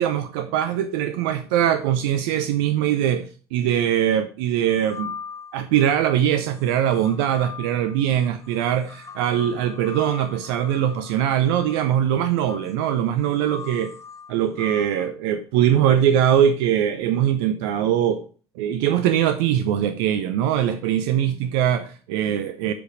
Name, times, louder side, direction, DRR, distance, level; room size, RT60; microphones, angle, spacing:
voice 1, 0.0-5.1 5.5-13.9 14.3-18.2 18.6-22.7, right 10 dB, 65° right, 0.7 m, -22 dB
sound 1, 4.7-5.9 6.5-15.1, left 6 dB, 20° left, 1.4 m, -40 dB
7.9 x 5.3 x 6.0 m
figure-of-eight pair, 65°, 14 cm